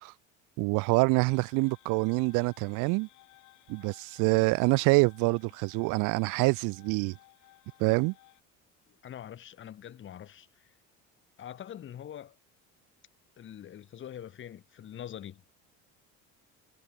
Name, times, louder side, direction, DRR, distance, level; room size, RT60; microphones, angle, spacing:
voice 1, 0.6-3.1 3.7-7.2 7.8-8.1, right 27 dB, 75° right, 0.8 m, -26 dB
sound 1, 1.3-8.4, left 18 dB, 70° left, 5.9 m, -60 dB
voice 2, 9.0-10.7 11.4-12.4 13.4-15.4, left 10 dB, 40° left, 1.9 m, -44 dB
cardioid pair, 125°, 31 cm